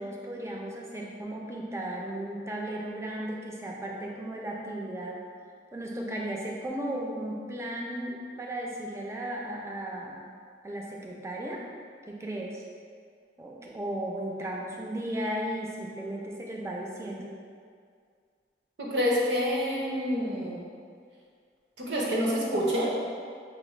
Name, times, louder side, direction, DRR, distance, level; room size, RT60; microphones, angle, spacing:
voice 1, 0.0-5.2 5.7-10.2 10.6-11.6 12.1-12.6 13.4-17.3, right 1 dB, 15° right, -2 dB, 0.4 m, -35 dB
voice 2, 18.8-20.6 21.8-22.9, equal, 75° right, -4 dB, 0.8 m, -27 dB
5.9 x 2.1 x 3.1 m, 2.1 s
head